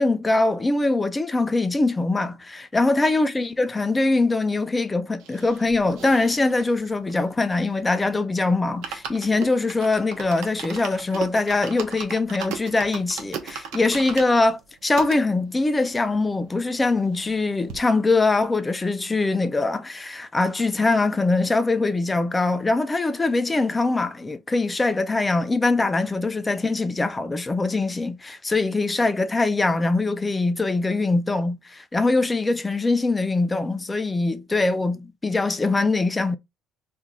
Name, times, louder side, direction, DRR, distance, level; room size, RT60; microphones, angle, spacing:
voice 1, 0.0-36.4, left 3 dB, 10° left, 0.3 m, -22 dB
sound 1, 5.2-8.0 8.3-8.4 8.7-15.2 15.8-15.9 16.0-16.1 16.4-17.4 17.7-17.8, right 7 dB, 80° right, 0.7 m, -37 dB
2.9 x 2.1 x 3.7 m
cardioid pair, 155°, 0 cm